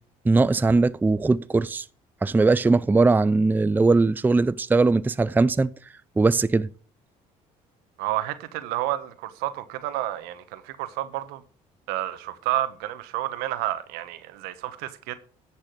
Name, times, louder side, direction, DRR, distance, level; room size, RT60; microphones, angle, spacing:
voice 1, 0.2-1.9 2.2-5.7 6.2-6.7, right 3 dB, 10° right, 0.4 m, -20 dB
voice 2, 8.0-11.4 11.9-15.2, right 14 dB, 80° right, 1.2 m, -30 dB
10.5 x 6.1 x 6.2 m
supercardioid pair, 75°, 16 cm